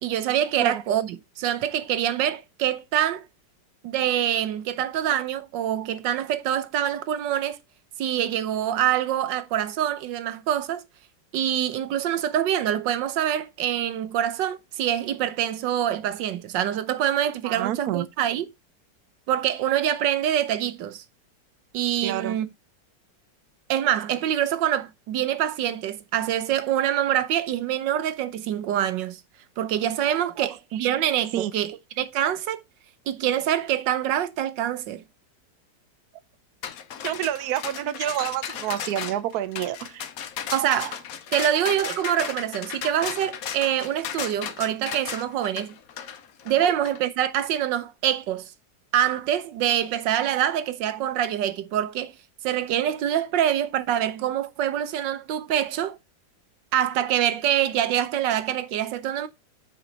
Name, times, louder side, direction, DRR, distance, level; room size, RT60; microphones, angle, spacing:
voice 1, 0.0-3.3 3.8-7.6 8.0-10.8 11.3-18.5 19.3-21.0 21.7-22.5 23.7-29.2 29.6-32.6 33.1-35.0 40.5-41.0 41.3-45.7 46.4-48.5 48.9-52.1 52.4-56.0 56.7-59.3, right 11 dB, 85° right, 1.5 m, -25 dB
voice 2, 17.4-18.1 22.0-22.4 30.4-30.5 31.3-31.5 37.0-40.1 46.6-46.7, right 12 dB, 65° right, 1.1 m, -28 dB
sound 1, 36.6-47.0, left 8 dB, 60° left, 1.2 m, -35 dB
8.0 x 5.4 x 4.0 m
omnidirectional pair, 1.9 m